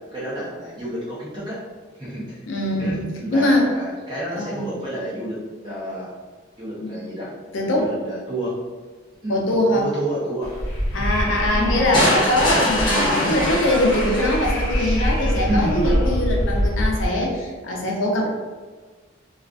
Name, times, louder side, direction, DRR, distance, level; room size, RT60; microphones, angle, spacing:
voice 1, 0.1-1.6 2.0-2.4 2.8-5.4 5.6-6.1 6.6-7.3 7.8-8.5 9.2-9.4 9.7-10.5 11.0-11.1 11.5-11.8 13.2-13.4 14.7-15.0 15.5-15.7, right 1 dB, 25° right, -8 dB, 0.6 m, -29 dB
voice 2, 2.5-3.0 3.3-3.7 4.3-4.7 6.8-7.0 7.5-7.9 9.3-9.9 10.9-18.3, left 1 dB, 85° left, -1 dB, 0.5 m, -22 dB
Wind, 10.4-17.1, equal, 65° left, 0.9 m, -24 dB
sound 1, 11.9-14.9, left 1 dB, 25° left, 0.8 m, -23 dB
2.4 x 2.3 x 2.4 m, 1.4 s
head